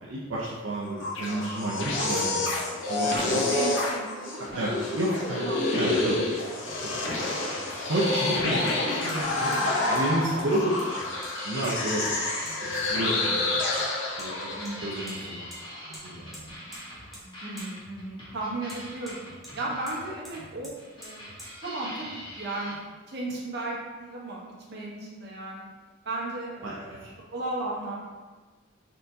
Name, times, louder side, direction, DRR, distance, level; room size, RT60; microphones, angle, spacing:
voice 1, 0.0-2.4 2.9-3.4 4.5-5.5 5.7-6.2 6.8-6.9 7.9-9.6 9.9-10.9 11.4-12.0 12.7-13.4 14.2-14.5 14.8-15.5 16.0-16.5 26.6-26.8, right 1 dB, 75° right, -6 dB, 0.6 m, -30 dB
sound 1, 0.8-15.0, left 2 dB, 65° left, 0.7 m, -28 dB
voice 2, 2.0-4.7 5.1-6.3 9.5-10.0 14.5-14.8 17.4-19.2 19.5-24.4 24.7-25.6 26.0-27.9, right 2 dB, 55° right, -4 dB, 1.0 m, -36 dB
sound 2, 6.6-22.7, equal, 25° left, 1.1 m, -43 dB
Hammer, 8.7-8.8 9.1-9.3 9.5-9.6 10.0-10.1 10.4-10.9 11.2-11.7 12.1-12.2 12.5-12.6 13.8-13.9 14.2-14.3 14.7-15.2 15.5-15.6 15.9-16.0 16.3-16.8 17.1-17.3 17.6-17.7 18.7-19.6 19.9-20.0 20.2-20.4 20.6-20.8 21.0-21.1 21.4-21.5, equal, ahead, 1.0 m, -46 dB
4.3 x 3.8 x 2.7 m, 1.3 s
head